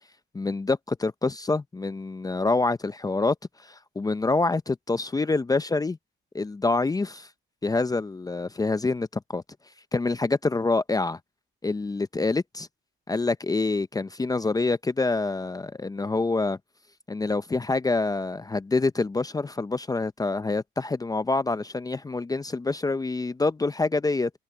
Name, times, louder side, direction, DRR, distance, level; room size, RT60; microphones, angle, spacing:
voice 1, 0.3-3.4 3.6-6.0 6.3-7.3 7.6-9.4 9.9-11.2 11.6-12.7 13.1-16.6 17.1-24.3, left 3 dB, 20° left, 0.6 m, -26 dB
cardioid pair, 90°, 20 cm